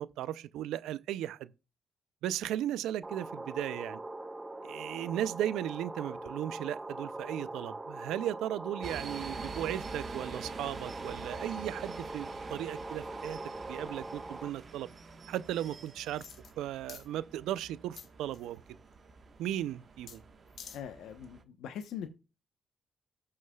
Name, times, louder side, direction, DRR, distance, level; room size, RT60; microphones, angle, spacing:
voice 1, 0.0-1.5 2.2-4.0 4.6-13.4 13.7-14.9 15.3-16.2 16.6-18.6 19.4-20.2, right 12 dB, 85° right, 0.4 m, -36 dB
sound 1, 3.0-14.5, right 2 dB, 20° right, 0.8 m, -42 dB
sound 2, 8.8-21.4, right 4 dB, 45° right, 1.2 m, -47 dB
sound 3, 16.2-16.6 16.9-17.1 18.0-18.6 20.1-20.2 20.5-20.8 21.2-21.3, left 7 dB, 65° left, 1.6 m, -48 dB
voice 2, 20.7-22.1, left 8 dB, 80° left, 0.9 m, -42 dB
18.0 x 6.3 x 2.3 m
cardioid pair, 90°, 0 cm